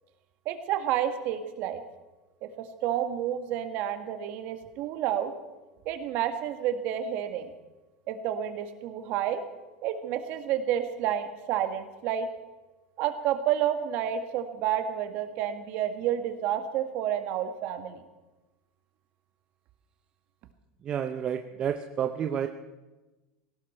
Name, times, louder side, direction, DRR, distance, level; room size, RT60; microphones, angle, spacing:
voice 1, 0.5-1.8 2.4-5.3 5.9-7.5 8.1-9.4 9.8-12.3 13.0-18.0, right 10 dB, 50° right, 7 dB, 1.8 m, -30 dB
voice 2, 20.8-22.5, right 8 dB, 25° right, 7 dB, 0.7 m, -30 dB
18.5 x 17.0 x 4.5 m, 1.1 s
supercardioid pair, 155°, 4 cm